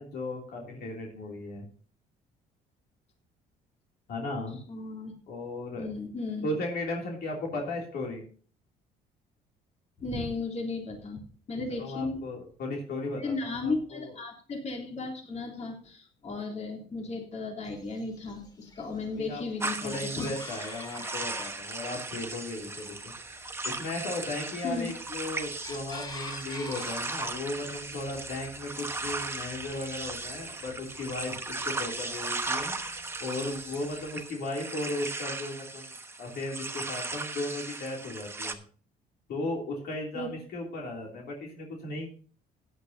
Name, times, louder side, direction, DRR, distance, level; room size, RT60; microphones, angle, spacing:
voice 1, 0.0-1.7 4.1-4.6 5.3-5.9 6.4-8.2 11.8-14.1 19.2-19.4 19.8-23.0 23.6-32.7 33.2-35.9 36.2-38.6 39.3-42.1, left 2 dB, 65° left, 0 dB, 3.0 m, -36 dB
voice 2, 4.7-5.1 5.8-6.5 10.0-11.2 11.5-12.2 13.1-20.4 24.6-24.9 40.1-40.3, left 3 dB, 40° left, 0 dB, 3.5 m, -35 dB
Chicken rooster, 17.6-34.2, left 2 dB, 25° left, 2.4 m, -49 dB
sound 1, 19.6-38.5, right 3 dB, 15° right, 1.2 m, -37 dB
15.5 x 10.0 x 2.8 m, 0.42 s
cardioid pair, 110°, 17 cm